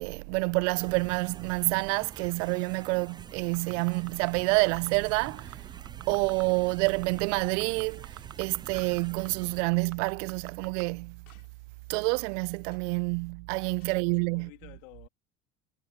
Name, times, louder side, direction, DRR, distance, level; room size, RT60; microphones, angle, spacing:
voice 1, 0.0-5.6 6.1-11.2 11.9-14.5, right 30 dB, 60° right, 0.7 m, -28 dB
sound 1, 0.7-9.6, right 6 dB, 10° right, 0.3 m, -48 dB
sound 2, 3.5-4.3 4.7-5.6 5.9-6.4 6.7-9.0 9.3-9.4 9.7-10.8 11.3-11.4, right 11 dB, 40° right, 2.0 m, -45 dB
sound 3, 5.0-5.6 6.0-6.1 6.5-9.6 10.1-11.9 12.7-13.1 13.5-14.1, left 10 dB, 80° left, 7.4 m, -68 dB
voice 2, 13.9-15.1, left 27 dB, 65° left, 2.9 m, -52 dB
hypercardioid pair, 75°, 42 cm